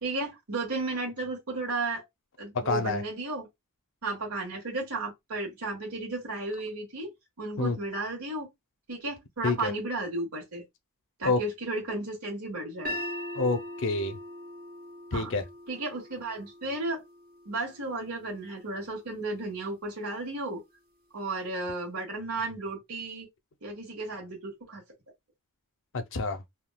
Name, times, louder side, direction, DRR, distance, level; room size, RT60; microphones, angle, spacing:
voice 1, 0.0-2.0 2.4-3.5 4.0-7.1 7.4-8.5 8.9-10.6 11.2-13.0 15.1-15.3 15.7-17.0 17.4-20.6 21.1-23.3 23.6-24.8, right 2 dB, 85° right, 1.4 m, -34 dB
voice 2, 2.6-3.0 7.6-7.8 9.4-9.7 11.2-11.4 13.3-14.2 15.1-15.4 25.9-26.4, left 3 dB, 60° left, 0.6 m, -27 dB
sound 1, 12.8-19.0, left 1 dB, 40° right, 0.8 m, -41 dB
3.5 x 2.3 x 2.3 m
head